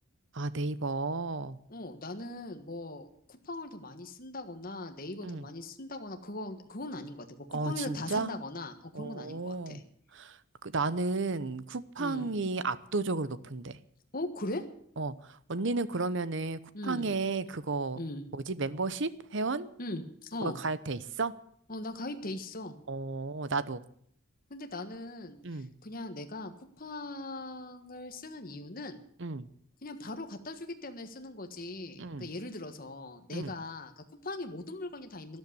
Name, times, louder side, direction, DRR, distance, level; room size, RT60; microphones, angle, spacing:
voice 1, 0.3-1.6 5.2-5.5 7.5-8.3 8.9-9.8 10.1-10.3 10.6-13.8 15.0-15.1 15.5-18.0 18.3-19.7 20.4-21.3 22.9-23.8 25.4-25.7 29.2-29.5 32.0-32.3 33.3-33.5, right 3 dB, 60° right, 15 dB, 0.9 m, -33 dB
voice 2, 1.7-9.8 12.0-12.3 14.1-14.6 16.7-17.1 17.9-18.2 19.8-20.6 21.7-22.7 24.5-29.0 29.8-35.4, left 2 dB, 45° left, 6 dB, 1.6 m, -40 dB
13.0 x 11.5 x 8.2 m, 0.66 s
head